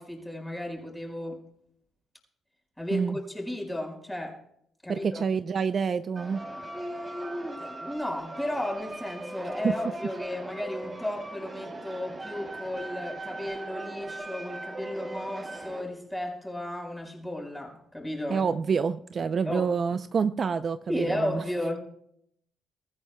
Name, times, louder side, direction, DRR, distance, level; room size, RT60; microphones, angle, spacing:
voice 1, 0.0-1.4 2.8-4.4 4.8-5.2 6.7-18.5 19.4-19.7 20.9-21.8, left 1 dB, 5° left, 4.8 m, -34 dB
voice 2, 4.9-6.4 9.6-9.7 18.3-21.4, right 6 dB, 45° right, 0.5 m, -27 dB
sound 1, 6.2-15.8, right 2 dB, 30° right, 3.0 m, -39 dB
23.5 x 14.0 x 2.2 m
cardioid pair, 90°, 0 cm